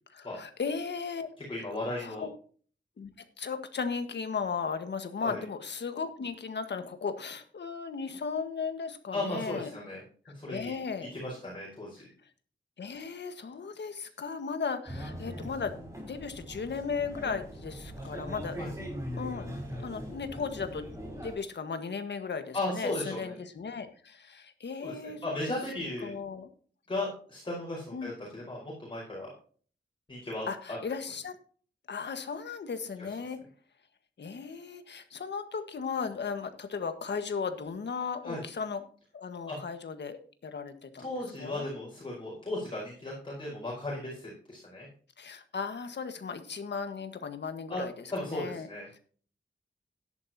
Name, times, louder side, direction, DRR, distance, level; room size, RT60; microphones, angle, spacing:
voice 1, 0.1-1.3 2.0-2.3 3.0-9.7 10.5-11.1 12.8-18.6 19.2-19.5 19.8-20.9 21.2-25.5 26.0-26.5 27.9-28.1 30.5-31.4 31.9-33.4 34.2-38.8 39.1-41.1 41.4-41.7 45.2-48.7, left 5 dB, 70° left, 8 dB, 1.6 m, -36 dB
voice 2, 1.5-2.3 5.2-5.4 9.1-10.0 10.3-10.7 11.1-12.1 18.0-18.2 18.6-18.7 22.5-23.3 24.8-26.2 26.9-29.3 30.1-30.8 38.2-38.4 39.5-39.6 41.0-44.9 47.7-47.8 48.1-48.9, left 1 dB, 25° left, -5 dB, 4.9 m, -36 dB
sound 1, 14.9-21.3, equal, 15° right, 5.9 m, -40 dB
13.5 x 10.5 x 2.9 m, 0.44 s
wide cardioid pair, 165°, 19 cm